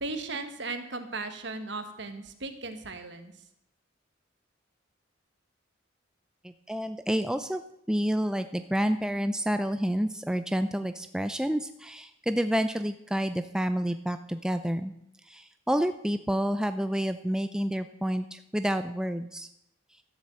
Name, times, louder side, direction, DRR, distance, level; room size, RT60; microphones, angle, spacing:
voice 1, 0.0-3.3, right 3 dB, 60° right, 8 dB, 1.4 m, -36 dB
voice 2, 6.7-7.6 7.9-14.9 15.3-19.5, equal, 5° right, 9 dB, 0.4 m, -29 dB
13.0 x 7.8 x 7.6 m, 0.79 s
head